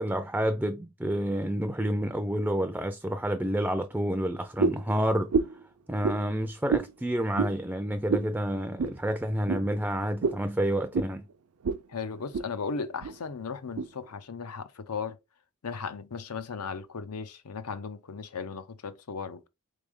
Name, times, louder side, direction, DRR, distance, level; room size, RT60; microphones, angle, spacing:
voice 1, 0.0-5.3 5.9-11.2, right 1 dB, 5° right, 0.4 m, -29 dB
sound 1, 4.6-4.9 5.3-5.6 6.0-6.2 6.7-6.9 7.3-7.6 8.1-8.3 8.8-9.0 9.5-9.6 10.2-10.4 10.9-11.1 11.6-11.8 12.1-12.5 13.0-13.1 13.8-13.9, right 4 dB, 75° right, 0.5 m, -27 dB
voice 2, 11.9-15.2 15.6-19.5, left 5 dB, 85° left, 0.7 m, -36 dB
4.2 x 3.3 x 3.6 m
head